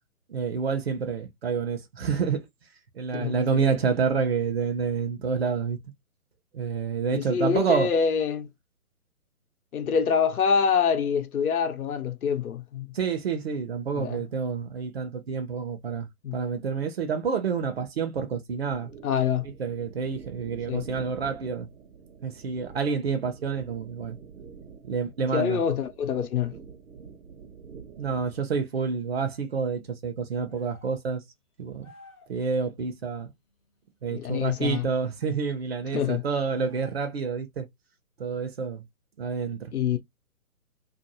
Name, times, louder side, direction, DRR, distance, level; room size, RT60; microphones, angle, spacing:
voice 1, 0.3-2.5 2.9-5.8 6.5-7.9 12.9-16.1 16.3-18.9 19.6-21.7 22.2-24.2 24.8-25.6 28.0-31.2 31.6-31.9 32.3-33.3 34.0-37.7 38.2-38.8 39.2-39.7, right 5 dB, 45° right, 0.7 m, -28 dB
voice 2, 3.1-3.8 7.1-8.5 9.7-13.0 14.0-14.2 16.2-16.4 19.0-19.5 20.7-20.9 25.3-26.5 34.1-34.9 35.9-36.2 39.7-40.0, left 7 dB, 75° left, 0.8 m, -26 dB
sound 1, 18.7-28.4, right 6 dB, 65° right, 0.9 m, -47 dB
sound 2, 30.5-31.0 31.8-32.4 34.9-35.4 36.4-37.2, left 3 dB, 20° left, 0.6 m, -53 dB
2.6 x 2.5 x 2.6 m
hypercardioid pair, 150°, 44 cm